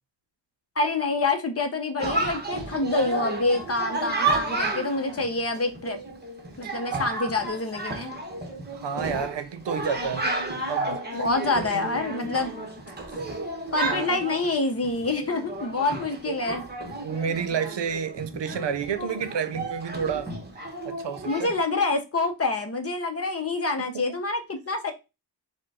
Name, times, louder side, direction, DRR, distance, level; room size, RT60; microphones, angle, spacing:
voice 1, 0.8-6.0 6.6-8.1 11.1-12.5 13.7-16.7 20.1-20.2 21.2-24.9, left 3 dB, 35° left, 0.7 m, -27 dB
Chatter, 2.0-21.6, right 2 dB, 25° right, 0.9 m, -32 dB
voice 2, 8.7-10.3 10.7-11.2 11.6-11.9 13.8-14.1 16.3-16.6 17.0-20.3 20.8-21.5 23.8-24.0, right 7 dB, 80° right, 0.7 m, -30 dB
5.0 x 2.2 x 4.6 m
wide cardioid pair, 180°, 42 cm